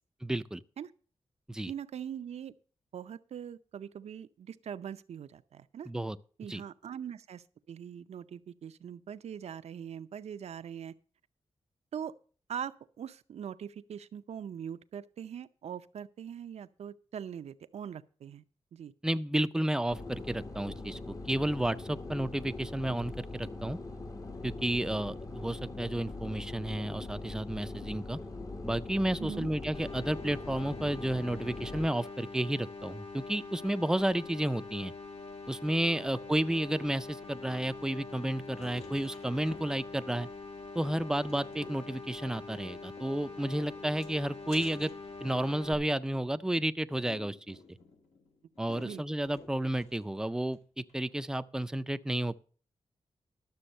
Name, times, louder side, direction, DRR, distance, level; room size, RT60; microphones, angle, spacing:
voice 1, 0.2-0.6 1.5-1.7 5.9-6.2 6.5-6.6 19.0-23.8 24.4-28.2 28.6-34.9 35.5-40.3 40.8-44.9 45.2-47.6 48.6-52.4, right 1 dB, 5° right, 0.4 m, -32 dB
voice 2, 1.7-2.5 2.9-5.9 6.4-10.9 11.9-12.1 12.5-18.4 18.7-18.9 25.0-25.1 29.2-29.5 48.8-49.0, right 8 dB, 75° right, 0.5 m, -42 dB
sound 1, 19.9-31.9, left 2 dB, 30° left, 0.9 m, -42 dB
sound 2, 29.7-45.7, left 3 dB, 60° left, 1.9 m, -44 dB
sound 3, 38.6-40.0 40.3-40.4 40.7-42.0 43.0-45.7 46.1-50.2 50.5-50.6 50.9-51.0, left 3 dB, 85° left, 2.2 m, -53 dB
11.5 x 7.0 x 5.4 m
wide cardioid pair, 115°, 11 cm